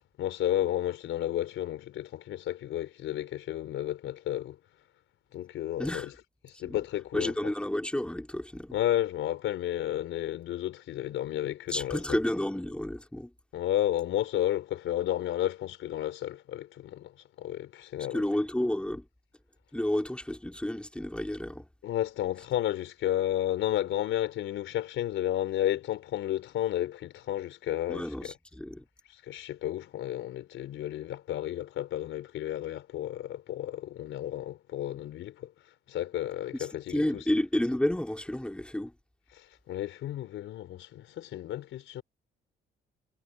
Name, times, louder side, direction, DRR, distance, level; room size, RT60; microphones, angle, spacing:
voice 1, 0.2-4.6 5.3-6.1 6.4-7.5 8.7-12.2 13.5-17.1 17.4-18.2 21.8-28.3 29.2-35.5 35.9-37.2 39.3-42.0, left 12 dB, 80° left, 4.2 m, -32 dB
voice 2, 5.8-6.1 6.7-6.8 7.1-8.8 11.7-13.3 18.1-19.1 19.7-21.7 27.9-28.8 36.6-38.9, left 1 dB, 5° left, 3.8 m, -31 dB
cardioid pair, 90°, 20 cm